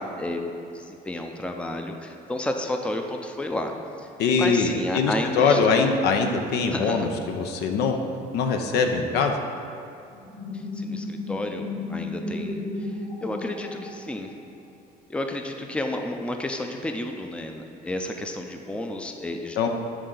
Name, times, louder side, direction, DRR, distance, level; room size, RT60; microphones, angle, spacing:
voice 1, 0.0-3.7 4.0-4.1 4.4-5.9 6.7-7.1 10.5-12.9 13.2-14.3 15.1-19.7, left 1 dB, 5° left, 4 dB, 0.5 m, -31 dB
voice 2, 4.2-8.0 8.3-9.4 19.6-19.7, left 5 dB, 75° left, 4 dB, 0.7 m, -22 dB
sound 1, 10.1-14.6, left 2 dB, 50° left, 1.7 m, -34 dB
11.0 x 3.8 x 3.9 m, 2.7 s
cardioid pair, 110°, 17 cm